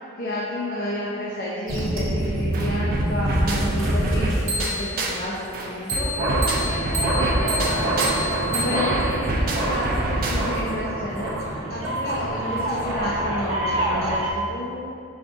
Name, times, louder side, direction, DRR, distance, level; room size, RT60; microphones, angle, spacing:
voice 1, 0.2-7.8 8.5-14.8, left 1 dB, 50° left, -7 dB, 0.6 m, -31 dB
sound 1, 1.7-5.0 5.9-14.3, right 1 dB, 85° right, 0.8 m, -25 dB
sound 2, 2.2-2.3 2.5-5.3 5.5-10.7, right 1 dB, 45° right, 0.4 m, -27 dB
5.1 x 3.5 x 2.5 m, 2.5 s
head